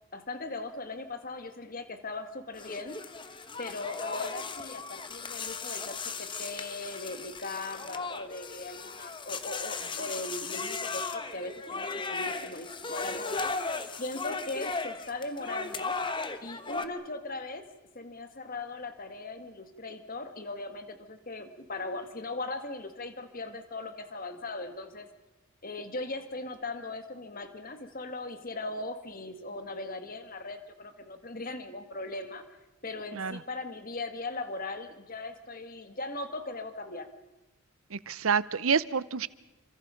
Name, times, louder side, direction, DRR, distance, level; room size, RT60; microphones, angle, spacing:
voice 1, 0.1-3.0 3.6-13.5 13.9-16.0 16.4-17.7 17.9-25.1 25.6-32.4 32.8-37.1, left 2 dB, 40° left, 8 dB, 1.9 m, -39 dB
sound 1, 2.5-16.9, left 4 dB, 20° left, 1.1 m, -37 dB
voice 2, 37.9-39.3, right 6 dB, 65° right, 18 dB, 0.8 m, -28 dB
29.0 x 25.5 x 5.2 m, 1.0 s
head